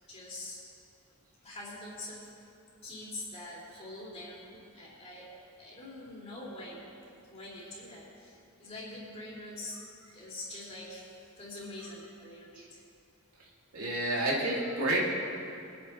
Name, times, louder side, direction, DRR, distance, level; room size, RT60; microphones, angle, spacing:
voice 1, 0.1-0.8 1.4-2.3 2.8-5.3 5.6-6.9 7.3-9.8 10.1-12.8, left 2 dB, 30° left, -7 dB, 3.7 m, -44 dB
voice 2, 13.7-15.0, right 1 dB, 85° right, -4 dB, 2.7 m, -29 dB
24.0 x 9.3 x 3.2 m, 2.6 s
head